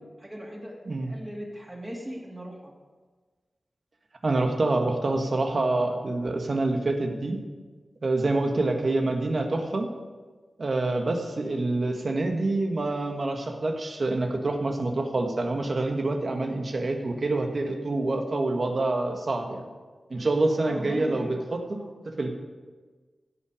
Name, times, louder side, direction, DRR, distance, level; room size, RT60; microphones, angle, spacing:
voice 1, 0.2-2.7 20.1-21.9, equal, 20° right, -3 dB, 2.9 m, -39 dB
voice 2, 4.2-7.4 8.0-9.9 10.6-19.7 20.1-21.8 22.0-22.3, right 2 dB, 55° right, 4 dB, 1.5 m, -26 dB
16.0 x 5.9 x 5.0 m, 1.4 s
cardioid pair, 50°, 0 cm